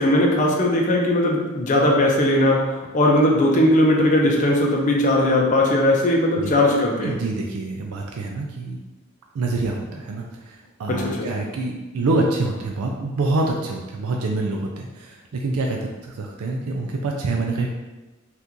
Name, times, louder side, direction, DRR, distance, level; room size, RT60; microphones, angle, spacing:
voice 1, 0.0-7.2 10.9-11.3, left 1 dB, 35° left, -1 dB, 0.5 m, -19 dB
voice 2, 7.0-8.8 9.3-17.7, right 2 dB, 80° right, 0 dB, 0.4 m, -26 dB
2.8 x 2.4 x 3.6 m, 1.1 s
head